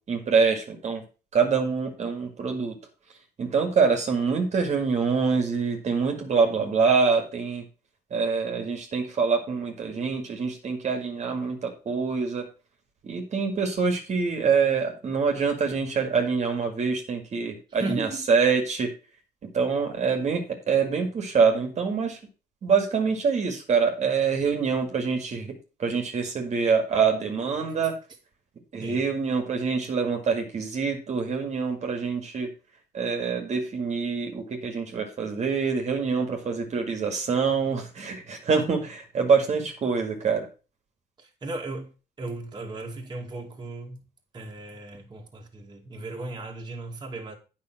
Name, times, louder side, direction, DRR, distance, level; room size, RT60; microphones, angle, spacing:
voice 1, 0.1-1.0 1.3-2.8 3.4-7.6 8.1-12.5 13.0-18.9 19.5-22.2 22.6-25.5 25.8-28.0 28.7-32.5 32.9-40.5, right 5 dB, 40° right, 2.1 m, -25 dB
voice 2, 17.8-18.3 28.8-29.1 41.2-41.9 42.2-44.0 44.3-47.4, right 2 dB, 25° right, 2.2 m, -36 dB
8.8 x 5.7 x 5.9 m
cardioid pair, 110°, 17 cm